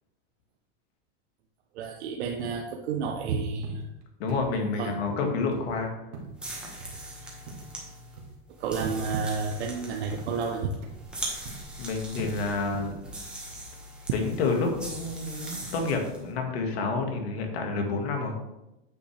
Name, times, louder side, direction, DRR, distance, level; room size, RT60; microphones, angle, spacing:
voice 1, 1.7-3.9 4.8-4.9 8.6-10.7, right 5 dB, 90° right, 2 dB, 0.9 m, -30 dB
sound 1, 2.4-2.6 3.0-3.3 3.6-4.0 4.3-4.5 4.9-5.1 5.5-5.7 6.1-6.4 6.8-7.0 7.5-7.7 8.2-8.4 8.8-9.1 9.5-9.7 10.1-10.3 10.8-11.1 11.5-11.8 12.2-12.4 12.7-13.0 13.5-13.7 14.2-14.4 14.9-15.2 15.6-15.7, right 4 dB, 70° right, 2.0 m, -42 dB
voice 2, 4.2-5.9 11.8-13.0 14.1-18.3, left 3 dB, 75° left, 3 dB, 1.8 m, -29 dB
sound 2, 6.3-16.2, right 1 dB, 5° right, 1.5 m, -41 dB
9.1 x 5.7 x 3.3 m, 0.95 s
supercardioid pair, 160°, 32 cm